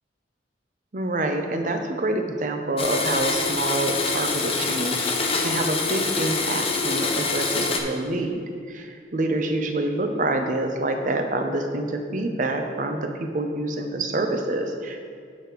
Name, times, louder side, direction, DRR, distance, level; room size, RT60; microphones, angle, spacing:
voice 1, 0.9-15.1, right 2 dB, 45° right, 5 dB, 0.7 m, -27 dB
Domestic sounds home sounds, 2.8-7.8, left 4 dB, 30° left, 0.7 m, -25 dB
8.4 x 5.0 x 4.6 m, 2.3 s
head